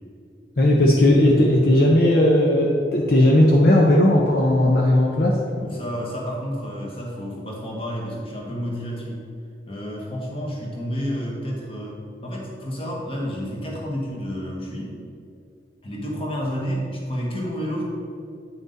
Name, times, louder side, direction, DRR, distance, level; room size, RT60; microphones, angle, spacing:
voice 1, 0.6-5.4, left 1 dB, 55° left, -2 dB, 0.7 m, -16 dB
voice 2, 5.6-9.2 9.7-15.0 15.8-17.8, equal, 30° left, -2 dB, 1.5 m, -30 dB
9.1 x 5.9 x 4.0 m, 2.5 s
head